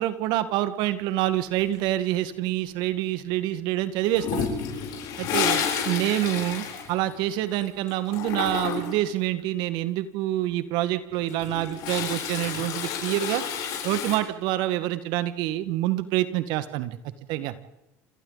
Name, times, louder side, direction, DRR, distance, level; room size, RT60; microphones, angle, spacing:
voice 1, 0.0-4.5 5.2-13.4 13.8-17.0 17.3-17.5, right 14 dB, 65° right, 12 dB, 1.6 m, -27 dB
Toilet flush, 4.1-7.6 7.9-9.1 11.1-14.2, left 7 dB, 60° left, 7.6 m, -30 dB
28.0 x 25.0 x 4.0 m, 0.93 s
hypercardioid pair, 75°, 8 cm